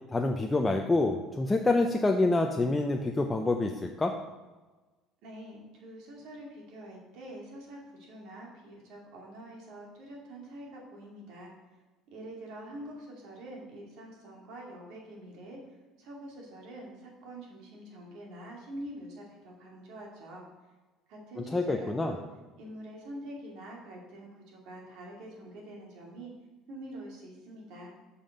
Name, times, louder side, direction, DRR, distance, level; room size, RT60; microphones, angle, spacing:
voice 1, 0.1-4.1 21.5-22.2, left 2 dB, 15° left, 3 dB, 0.5 m, -27 dB
voice 2, 5.2-11.5 12.1-15.6 16.0-20.5 21.1-22.2 22.6-26.3 26.7-27.9, right 1 dB, 70° right, -1 dB, 2.5 m, -45 dB
6.9 x 5.7 x 5.2 m, 1.2 s
cardioid pair, 130°, 0 cm